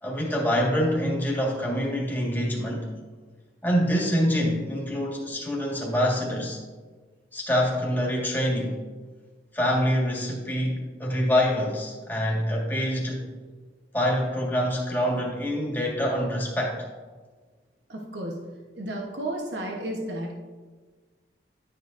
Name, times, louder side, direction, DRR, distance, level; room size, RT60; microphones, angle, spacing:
voice 1, 0.0-2.9 3.6-6.6 7.3-8.8 9.5-13.2 13.9-16.8, equal, 10° left, -3 dB, 1.7 m, -25 dB
voice 2, 17.9-18.4 18.7-20.3, right 1 dB, 80° right, 0 dB, 1.1 m, -32 dB
11.5 x 7.8 x 2.6 m, 1.4 s
head